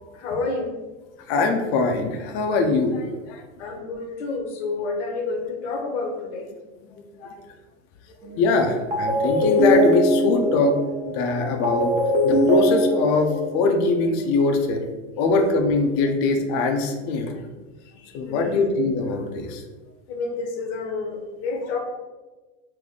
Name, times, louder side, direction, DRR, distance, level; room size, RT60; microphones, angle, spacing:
voice 1, 0.1-0.8 3.6-6.5 17.7-18.7 20.1-21.8, left 3 dB, 65° left, 3 dB, 0.8 m, -30 dB
voice 2, 1.3-3.4 7.2-7.4 8.4-10.8 11.0-11.9 12.2-14.8 15.2-17.5 18.1-19.6 21.5-21.6, left 3 dB, 40° left, 4 dB, 0.5 m, -22 dB
sound 1, 8.2-8.5 8.9-14.0, left 1 dB, 20° right, 0.7 m, -22 dB
3.3 x 2.6 x 3.8 m, 1.2 s
supercardioid pair, 135°, 38 cm